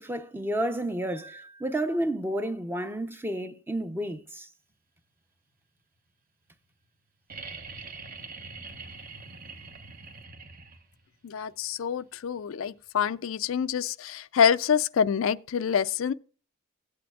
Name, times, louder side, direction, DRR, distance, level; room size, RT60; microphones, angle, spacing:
voice 1, 0.0-4.5, right 1 dB, 10° right, 0.6 m, -31 dB
sound 1, 7.3-11.1 12.8-12.9, right 4 dB, 45° right, 1.0 m, -43 dB
voice 2, 11.2-16.1, left 7 dB, 70° left, 0.4 m, -26 dB
16.5 x 8.5 x 2.4 m
head